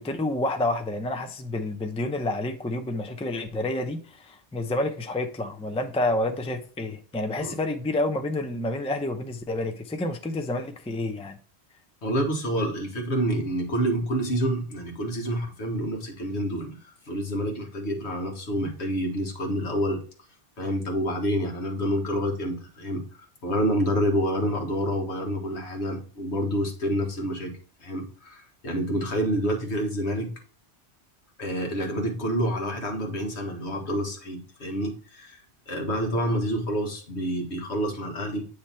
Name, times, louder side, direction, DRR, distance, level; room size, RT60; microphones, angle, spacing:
voice 1, 0.0-11.4, left 2 dB, 10° left, 0.4 m, -29 dB
voice 2, 12.0-20.0 20.6-23.1 23.4-30.3 31.4-38.5, equal, 75° left, 1.7 m, -28 dB
8.7 x 3.2 x 4.3 m
omnidirectional pair, 1.1 m